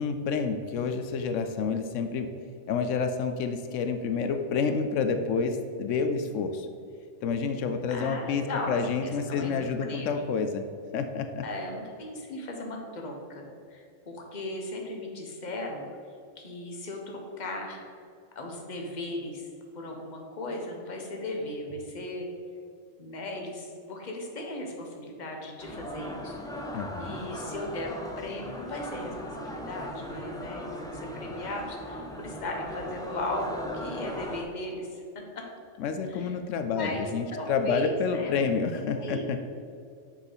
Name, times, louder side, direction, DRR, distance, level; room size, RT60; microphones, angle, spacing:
voice 1, 0.0-2.3 2.7-6.7 7.2-10.6 10.9-11.4 26.7-27.2 35.8-39.4, left 5 dB, 90° left, 7 dB, 0.9 m, -29 dB
voice 2, 7.9-10.2 11.4-15.8 16.4-17.9 18.3-19.5 19.7-22.3 23.0-26.4 27.0-35.5 36.1-36.4 36.7-37.1 37.3-38.5 38.7-39.3, left 1 dB, 40° left, 1 dB, 1.1 m, -37 dB
sound 1, 25.6-34.4, equal, 5° left, 0.6 m, -38 dB
6.7 x 4.8 x 5.5 m, 2.4 s
omnidirectional pair, 1.2 m